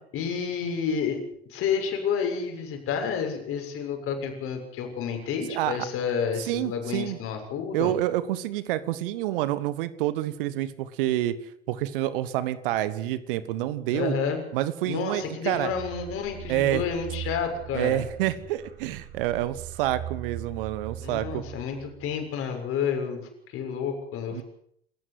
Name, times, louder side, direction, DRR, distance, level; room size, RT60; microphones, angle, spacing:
voice 1, 0.1-1.2 1.5-7.9 13.9-14.4 14.9-18.0 21.0-23.2 23.5-24.4, left 6 dB, 45° left, 4 dB, 6.7 m, -30 dB
voice 2, 5.5-5.9 6.4-7.2 7.7-11.4 11.7-14.1 14.5-15.7 16.5-16.8 17.7-21.4 24.3-24.4, right 14 dB, 60° right, 15 dB, 1.5 m, -28 dB
sound 1, 15.7-22.2, right 11 dB, 40° right, 6.8 m, -40 dB
27.5 x 14.0 x 8.0 m, 0.69 s
figure-of-eight pair, 70°, 30 cm